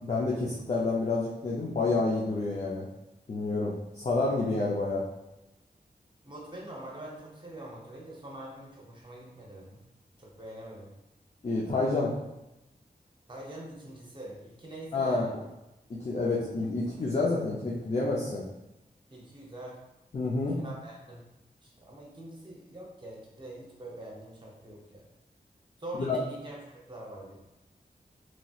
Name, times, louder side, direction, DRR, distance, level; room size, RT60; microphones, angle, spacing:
voice 1, 0.0-2.9 3.3-5.0 11.4-12.1 14.9-15.3 15.9-18.4 20.1-20.6 26.0-26.2, left 3 dB, 40° left, -5 dB, 0.5 m, -29 dB
voice 2, 6.2-9.8 10.2-10.9 13.3-15.2 19.1-19.8 20.6-21.3 21.6-25.1 25.8-27.4, right 1 dB, 30° right, -3 dB, 0.7 m, -44 dB
3.0 x 2.7 x 2.3 m, 0.95 s
wide cardioid pair, 85°, 17 cm